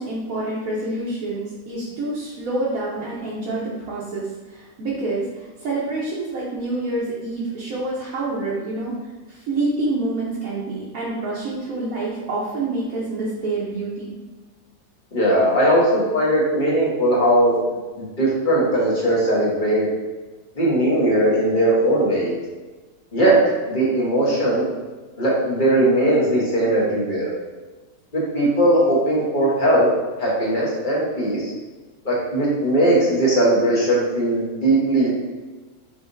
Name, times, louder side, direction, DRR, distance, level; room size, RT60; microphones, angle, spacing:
voice 1, 0.0-9.0 9.3-14.1, right 2 dB, 65° right, -6 dB, 1.2 m, -27 dB
voice 2, 15.1-17.6 18.2-19.9 20.6-22.3 23.1-23.4 23.7-24.7 25.2-27.3 28.1-29.9 30.2-31.5 32.0-35.1, right 1 dB, 35° left, -6 dB, 1.1 m, -19 dB
4.9 x 3.3 x 2.6 m, 1.3 s
omnidirectional pair, 1.6 m